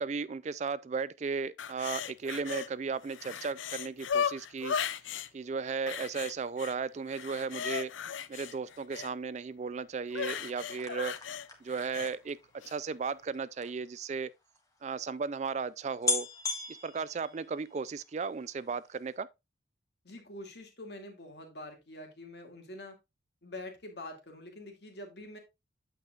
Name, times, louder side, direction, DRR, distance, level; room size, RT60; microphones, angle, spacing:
voice 1, 0.0-4.8 5.3-7.9 8.3-11.1 11.6-14.3 14.8-16.3 16.7-19.3, right 5 dB, 35° right, 0.3 m, -35 dB
sound 1, 1.6-2.7 3.0-5.3 5.9-6.8 7.1-9.1 10.1-12.1 12.6-12.8, left 7 dB, 80° left, 0.5 m, -36 dB
sound 2, 10.1-13.7 14.5-14.6 14.8-14.9 15.5-15.6 16.0-17.9 18.3-18.8 19.0-19.1, left 4 dB, 20° left, 1.6 m, -37 dB
voice 2, 20.0-23.0 23.4-25.4, left 1 dB, 55° left, 2.4 m, -45 dB
8.9 x 7.8 x 2.4 m
head